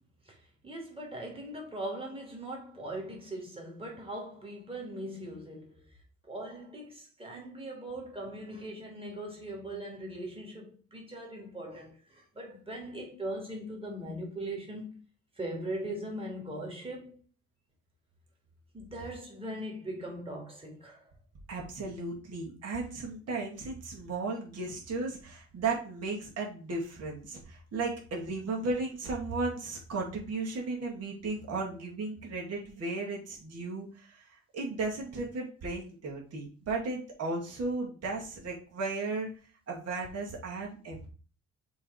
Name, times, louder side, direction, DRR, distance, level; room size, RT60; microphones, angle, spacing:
voice 1, 0.6-5.8 6.3-14.9 15.4-17.2 18.7-21.1, right 1 dB, 20° right, 2.5 m, -40 dB
voice 2, 21.5-39.3 39.7-41.0, right 3 dB, 55° right, 2.3 m, -35 dB
7.0 x 3.4 x 4.9 m
cardioid pair, 90°, 30 cm